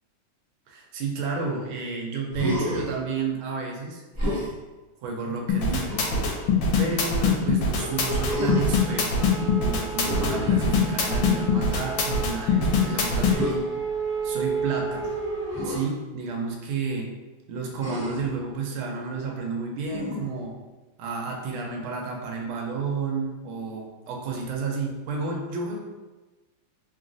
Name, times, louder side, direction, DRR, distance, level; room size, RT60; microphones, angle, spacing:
voice 1, 0.7-4.6 5.0-6.0 6.8-13.8 14.2-15.1 15.6-17.2 17.5-20.6 21.0-25.8, right 4 dB, 90° right, 0 dB, 1.5 m, -31 dB
Human voice, 2.3-2.9 4.2-4.5 5.8-6.5 8.2-8.9 10.0-11.2 13.3-13.6 15.5-15.8 17.8-18.3 19.9-20.4, left 1 dB, 15° left, 0.6 m, -30 dB
sound 1, 5.5-13.3, left 4 dB, 80° left, 1.4 m, -22 dB
sound 2, 7.8-15.8, right 4 dB, 75° right, 1.4 m, -32 dB
3.5 x 2.3 x 2.5 m, 1.2 s
omnidirectional pair, 2.2 m